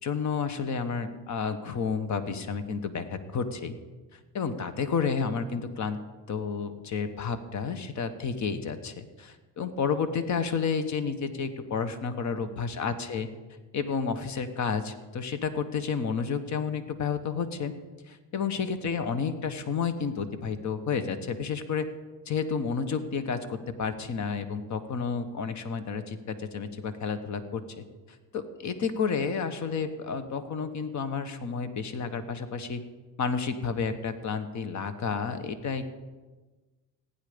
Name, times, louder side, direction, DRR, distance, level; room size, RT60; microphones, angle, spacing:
voice 1, 0.0-3.8 4.1-6.0 6.3-13.3 13.7-17.7 18.1-21.9 22.3-27.8 28.3-32.8 33.2-35.9, left 5 dB, 45° left, 10 dB, 1.3 m, -31 dB
15.5 x 9.9 x 5.2 m, 1.3 s
supercardioid pair, 90°, 39 cm